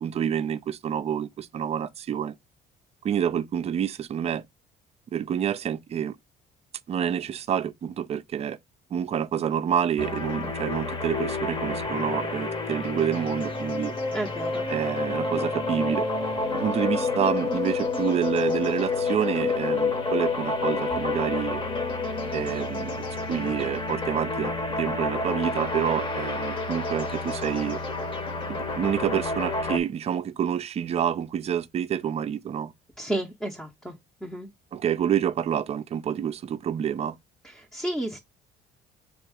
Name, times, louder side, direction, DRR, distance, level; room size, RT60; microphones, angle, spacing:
voice 1, 0.0-2.4 3.0-4.4 5.1-6.2 6.9-8.6 8.9-13.9 14.7-16.1 16.5-21.6 22.3-27.8 28.5-32.7 34.7-37.2, right 9 dB, 40° right, 0.4 m, -28 dB
sound 1, 10.0-29.8, left 3 dB, 30° left, 0.9 m, -29 dB
voice 2, 14.1-14.7 33.0-33.9 34.2-34.5 37.4-38.2, right 1 dB, 5° left, 0.7 m, -32 dB
3.6 x 2.9 x 4.7 m
cardioid pair, 110°, 17 cm